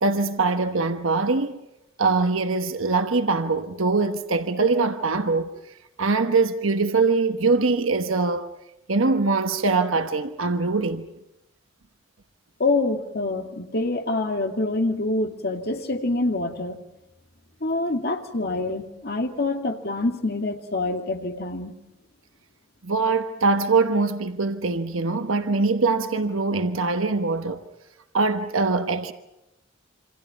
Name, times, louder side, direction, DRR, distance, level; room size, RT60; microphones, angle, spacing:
voice 1, 0.0-1.6 2.0-5.5 6.0-8.5 8.9-11.0 22.8-27.6 28.1-29.1, right 3 dB, 85° right, 1.2 m, -23 dB
voice 2, 12.6-16.8 17.6-21.7, left 2 dB, 50° left, 2.3 m, -26 dB
27.5 x 26.0 x 5.8 m
head